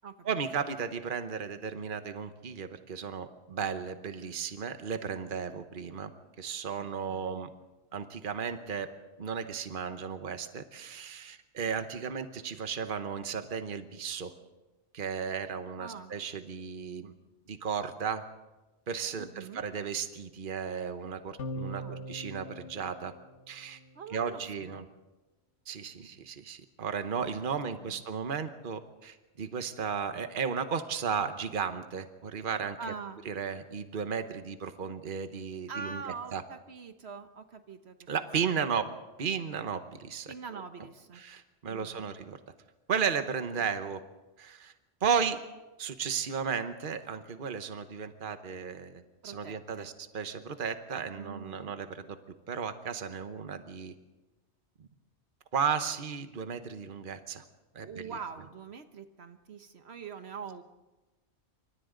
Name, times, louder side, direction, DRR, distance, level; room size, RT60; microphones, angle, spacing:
voice 1, 0.2-6.1 6.4-7.5 7.9-8.9 9.2-14.3 14.9-17.1 17.5-18.2 18.9-23.1 23.5-23.8 24.1-24.9 25.7-32.8 33.2-36.4 38.1-40.3 41.2-42.4 42.9-44.0 44.4-44.7 45.0-45.4 45.8-52.2 52.5-53.9 55.5-57.4 57.7-58.1, right 6 dB, 50° right, 9 dB, 1.2 m, -34 dB
voice 2, 6.8-7.4 15.8-16.1 19.2-19.6 21.6-22.1 23.9-24.9 27.8-28.0 32.8-33.2 35.7-38.0 38.3-38.8 40.3-41.2 41.7-42.1 49.2-49.9 51.1-51.7 57.8-60.6, right 5 dB, 70° right, 8 dB, 1.3 m, -44 dB
sound 1, 21.4-24.0, equal, 90° left, 1.6 m, -41 dB
27.5 x 25.0 x 3.9 m, 1.1 s
omnidirectional pair, 1.1 m